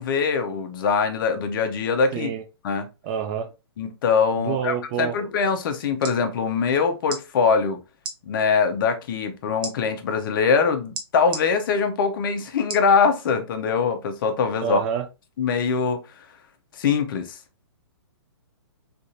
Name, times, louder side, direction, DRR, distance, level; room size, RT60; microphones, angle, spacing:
voice 1, 0.0-2.3 2.6-2.9 3.8-7.8 8.3-14.8 15.4-16.0 16.8-17.4, left 5 dB, 50° left, 0.7 m, -23 dB
voice 2, 2.1-2.4 3.0-3.5 4.4-5.2 14.6-15.0, right 8 dB, 25° right, 0.3 m, -27 dB
sound 1, 6.0-6.2 7.0-7.2 8.0-8.2 9.6-9.7 10.9-11.4 12.7-12.9 13.5-13.6, right 4 dB, 55° right, 0.8 m, -33 dB
3.4 x 2.4 x 2.7 m
hypercardioid pair, 150°, 14 cm